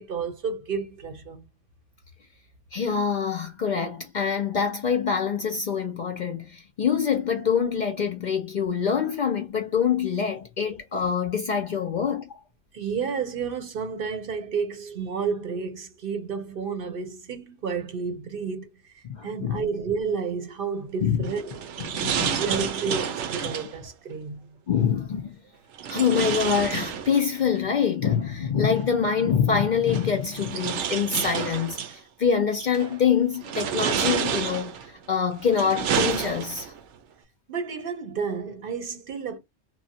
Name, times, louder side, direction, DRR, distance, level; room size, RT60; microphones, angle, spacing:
voice 1, 0.0-1.4 12.7-21.7 22.4-24.4 37.5-39.4, right 5 dB, 55° right, 0.8 m, -31 dB
voice 2, 2.7-12.3 19.0-19.6 21.0-21.2 22.0-22.4 24.7-25.3 25.9-36.7, left 7 dB, 55° left, 0.5 m, -25 dB
sound 1, 21.2-23.8 25.8-27.4 28.8-28.9 29.9-32.0 32.6-33.0 33.4-34.9 35.4-36.8, right 8 dB, 90° right, 1.0 m, -29 dB
3.0 x 2.0 x 2.7 m
omnidirectional pair, 1.2 m